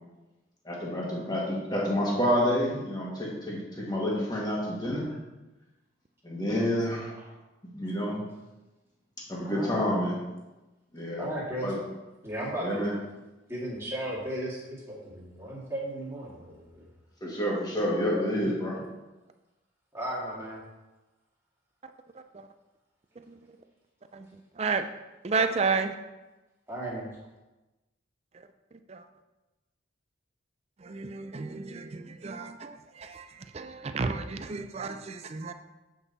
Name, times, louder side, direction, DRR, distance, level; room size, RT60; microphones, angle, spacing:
voice 1, 0.6-5.2 6.2-7.1 7.6-8.2 9.3-10.2 10.9-11.2 11.6-11.8 12.6-12.9 17.2-18.8, equal, 20° left, 1.8 m, -28 dB
voice 2, 9.4-9.8 11.2-11.7 12.2-12.8 13.5-16.9 19.9-20.6 26.7-27.1, right 1 dB, 15° right, 2.0 m, -35 dB
voice 3, 25.2-25.9 28.9-29.0 30.8-35.5, right 4 dB, 30° right, 0.4 m, -32 dB
8.4 x 5.4 x 4.1 m
head